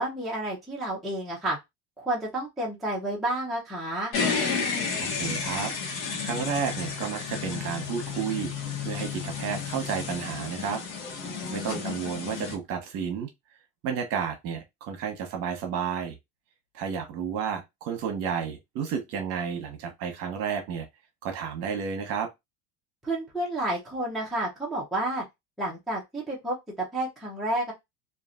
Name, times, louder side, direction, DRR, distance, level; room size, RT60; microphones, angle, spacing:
voice 1, 0.0-1.6 2.0-4.1 11.2-11.9 23.0-25.2 25.6-27.7, right 1 dB, ahead, 0.6 m, -30 dB
sound 1, 4.1-12.5, left 5 dB, 90° left, 1.1 m, -32 dB
voice 2, 5.0-8.5 8.8-10.8 11.5-13.3 13.8-16.2 16.7-20.9 21.2-22.3, right 7 dB, 45° right, 1.0 m, -32 dB
3.0 x 2.5 x 2.5 m
cardioid pair, 170°, 34 cm